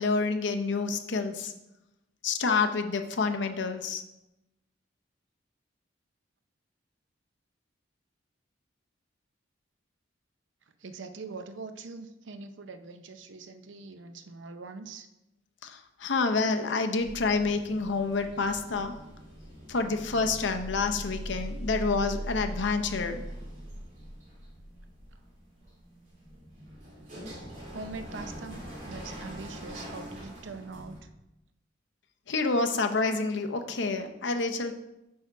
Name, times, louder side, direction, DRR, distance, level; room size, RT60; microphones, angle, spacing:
voice 1, 0.0-1.5 2.2-4.0 15.6-18.9 19.7-23.2 32.3-34.7, left 4 dB, 70° left, 6 dB, 0.7 m, -28 dB
voice 2, 10.8-15.1 27.0-27.1 27.7-31.1, right 4 dB, 80° right, 9 dB, 0.6 m, -43 dB
sound 1, 17.0-31.0, equal, 45° right, 2.6 m, -42 dB
6.2 x 5.9 x 4.6 m, 0.92 s
head